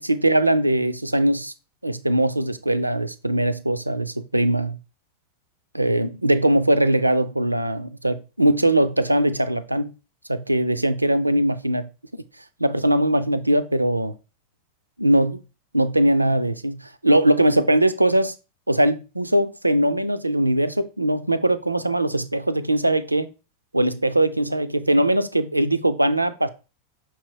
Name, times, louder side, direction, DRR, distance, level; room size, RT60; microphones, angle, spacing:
voice 1, 0.0-1.5 1.8-4.8 5.7-9.9 10.3-11.9 12.6-14.1 15.0-15.4 15.7-18.3 18.7-23.3 23.7-26.5, right 1 dB, 85° right, 0.3 m, -21 dB
5.5 x 3.0 x 3.1 m
figure-of-eight pair, 90°, 0 cm